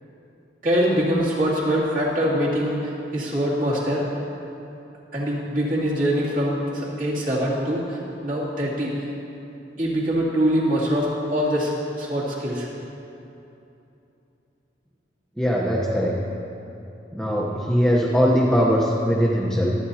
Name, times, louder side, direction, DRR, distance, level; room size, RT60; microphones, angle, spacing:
voice 1, 0.6-2.8 3.1-4.0 5.1-7.8 8.2-8.9 9.8-11.7 11.9-12.7, equal, 45° right, -6 dB, 2.6 m, -23 dB
voice 2, 15.4-16.1 17.1-19.7, equal, 5° left, -5 dB, 0.9 m, -20 dB
24.0 x 9.2 x 2.8 m, 2.9 s
head